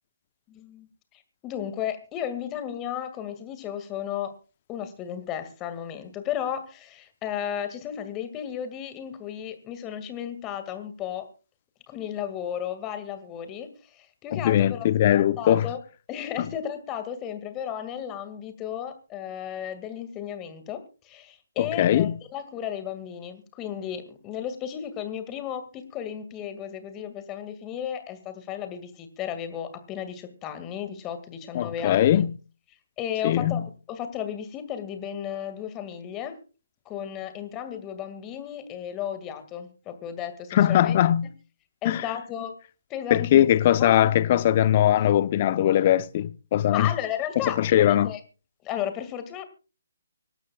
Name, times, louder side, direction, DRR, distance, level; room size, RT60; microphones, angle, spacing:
voice 1, 0.5-0.9 1.1-4.3 4.7-11.3 11.9-15.8 16.1-32.1 33.0-36.4 36.9-41.0 41.8-42.5 42.9-43.9 46.7-48.2 48.6-49.4, left 9 dB, 20° left, 2.1 m, -34 dB
voice 2, 14.3-15.7 16.4-16.5 21.6-22.2 31.5-32.4 33.2-33.6 40.5-41.3 41.8-42.0 43.1-46.9 47.6-48.1, left 11 dB, 35° left, 0.7 m, -21 dB
25.5 x 12.5 x 2.4 m
figure-of-eight pair, 140°, 0 cm